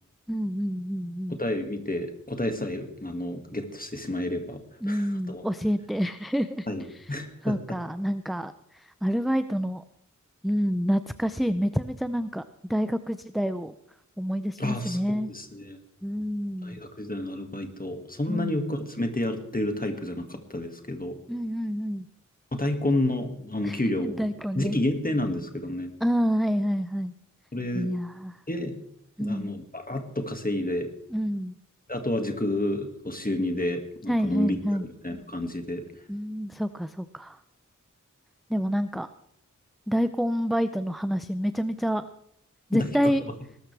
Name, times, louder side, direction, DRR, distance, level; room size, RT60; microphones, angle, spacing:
voice 1, 0.3-1.4 4.8-6.7 6.9-7.1 7.4-9.8 10.4-12.4 12.7-13.7 14.2-15.3 16.0-16.8 18.3-18.6 21.3-22.1 23.6-24.8 26.0-27.1 27.7-28.4 29.2-29.5 31.1-31.6 34.1-34.9 36.1-37.4 38.5-39.1 39.9-42.0 42.7-43.2, equal, ahead, 11 dB, 0.5 m, -28 dB
voice 2, 1.3-4.6 4.9-5.4 6.7-7.6 14.6-15.8 16.6-21.2 22.5-24.3 24.6-25.9 27.5-27.9 28.5-28.8 29.2-30.9 31.9-34.6 35.0-35.8 42.7-42.9, left 1 dB, 30° left, 5 dB, 2.0 m, -30 dB
20.5 x 13.0 x 3.4 m, 0.74 s
wide cardioid pair, 50°, 31 cm